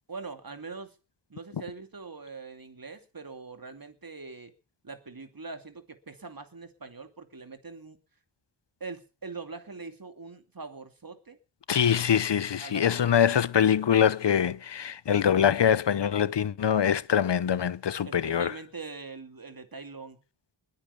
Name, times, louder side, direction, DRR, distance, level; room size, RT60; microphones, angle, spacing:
voice 1, 0.1-0.9 1.3-4.5 4.8-8.0 8.8-11.4 12.6-13.4 18.1-20.2, right 4 dB, 50° right, 2.7 m, -43 dB
voice 2, 11.7-18.6, left 8 dB, 65° left, 0.8 m, -24 dB
21.0 x 8.5 x 7.0 m
wide cardioid pair, 60°, 46 cm